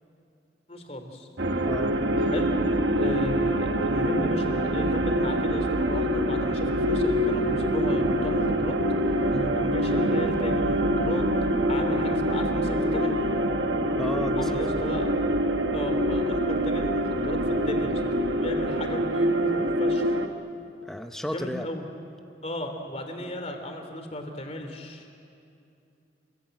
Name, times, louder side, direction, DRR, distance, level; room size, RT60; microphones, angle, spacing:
voice 1, 0.7-1.3 2.2-2.5 3.0-8.8 9.5-11.2 11.7-13.2 14.3-15.1 15.7-18.0 18.3-20.2 21.3-21.8 22.4-25.1, left 1 dB, 35° left, 5 dB, 3.0 m, -35 dB
sound 1, 1.4-20.3, right 1 dB, 65° right, 1.4 m, -25 dB
voice 2, 14.0-14.8 20.8-21.7, equal, ahead, 6 dB, 0.7 m, -33 dB
28.0 x 22.0 x 9.1 m, 2.6 s
head